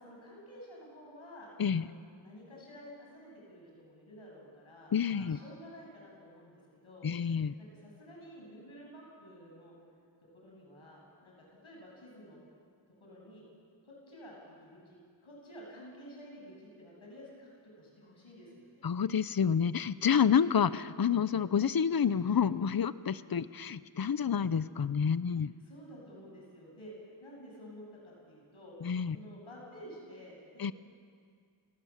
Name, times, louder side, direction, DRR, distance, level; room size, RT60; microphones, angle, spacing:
voice 1, 0.0-1.9 2.2-9.7 10.3-12.4 13.0-13.4 13.8-18.9 25.4-26.9 27.2-28.7 29.1-30.6, equal, 80° left, -2 dB, 8.0 m, -51 dB
voice 2, 4.9-5.4 7.0-7.5 18.8-25.5 28.8-29.2 30.6-30.7, left 7 dB, 50° left, 16 dB, 0.8 m, -29 dB
29.0 x 17.5 x 7.3 m, 2.2 s
cardioid pair, 45°, 47 cm